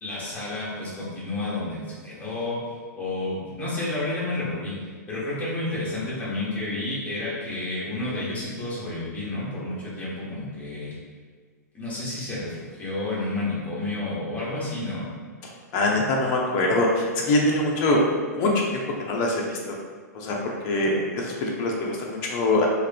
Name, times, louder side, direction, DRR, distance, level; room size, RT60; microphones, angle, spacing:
voice 1, 0.0-10.9 11.7-15.0, left 2 dB, 15° left, -8 dB, 0.9 m, -30 dB
voice 2, 15.7-18.0 18.3-19.8 20.1-22.7, left 2 dB, 35° left, -1 dB, 0.4 m, -24 dB
2.4 x 2.2 x 2.5 m, 1.5 s
figure-of-eight pair, 110°, 9 cm